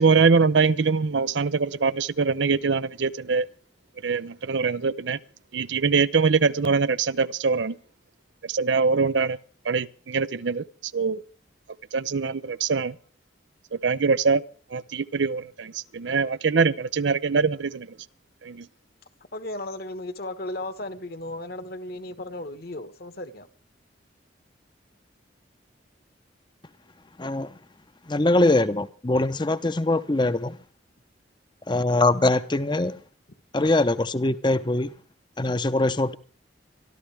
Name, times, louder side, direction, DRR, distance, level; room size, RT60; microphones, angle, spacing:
voice 1, 0.0-3.5 4.0-5.2 5.5-7.8 8.4-9.4 9.6-10.6 10.9-11.2 11.9-12.9 13.8-14.4 14.7-17.9 18.4-18.7, right 5 dB, 80° right, 0.6 m, -23 dB
voice 2, 19.3-23.5, left 1 dB, 55° left, 1.4 m, -35 dB
voice 3, 27.2-27.5 28.1-30.6 31.7-33.0 33.5-34.9 35.4-36.2, left 2 dB, 25° left, 0.8 m, -22 dB
24.5 x 13.0 x 3.4 m
head